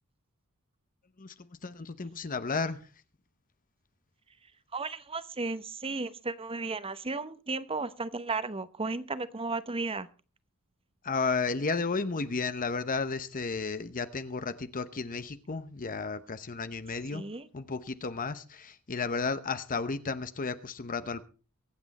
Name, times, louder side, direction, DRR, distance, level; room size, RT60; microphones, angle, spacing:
voice 1, 1.6-2.9 11.0-17.2 17.5-21.3, left 4 dB, 40° left, 0.9 m, -33 dB
voice 2, 4.7-10.1 17.1-17.5, right 3 dB, 25° right, 0.9 m, -34 dB
23.0 x 8.8 x 4.1 m
head